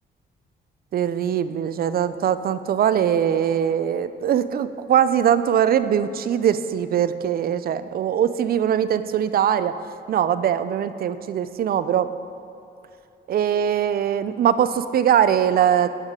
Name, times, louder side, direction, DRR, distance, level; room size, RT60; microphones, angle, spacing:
voice 1, 0.9-9.7 10.1-12.1 13.3-15.9, right 9 dB, 55° right, 13 dB, 0.4 m, -21 dB
9.6 x 8.1 x 3.7 m, 2.7 s
cardioid pair, 85°, 19 cm